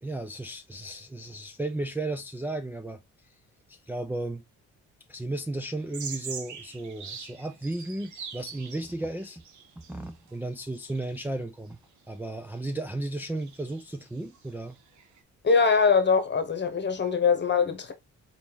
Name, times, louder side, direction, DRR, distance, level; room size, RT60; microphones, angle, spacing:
voice 1, 0.0-3.3 3.7-4.4 5.1-9.4 9.8-11.8 12.1-14.8, right 2 dB, 5° right, 0.4 m, -34 dB
sound 1, 5.8-10.4 10.7-11.2 12.6-12.7 13.0-13.1 13.3-15.2, right 6 dB, 70° right, 1.1 m, -42 dB
voice 2, 15.4-17.9, left 5 dB, 35° left, 1.2 m, -22 dB
4.2 x 3.4 x 2.9 m
cardioid pair, 90°, 30 cm